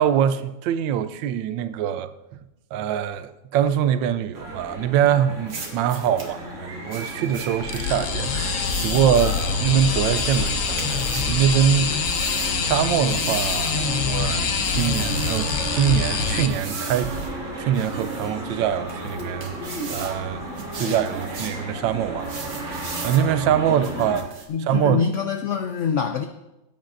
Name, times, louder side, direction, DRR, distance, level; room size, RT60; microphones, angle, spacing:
voice 1, 0.0-2.4 2.7-11.9 12.2-17.1 17.6-19.5 19.9-20.4 20.8-24.3 24.6-25.0, right 9 dB, 90° right, 1.3 m, -24 dB
sound 1, 4.3-24.2, right 1 dB, 40° right, 2.3 m, -34 dB
sound 2, 5.5-6.3 6.9-7.8 8.6-9.5 10.2-11.4 12.1-12.6 13.1-13.8 14.6-15.5 16.5-17.3 17.7-18.3 18.9-20.2 20.6-21.6 22.2-23.3 23.8-24.5, right 4 dB, 60° right, 1.8 m, -38 dB
sound 3, 7.6-16.5, left 5 dB, 55° left, 1.0 m, -25 dB
voice 2, 23.7-24.1 24.5-26.3, left 6 dB, 85° left, 0.6 m, -25 dB
18.5 x 9.0 x 2.6 m
omnidirectional pair, 2.0 m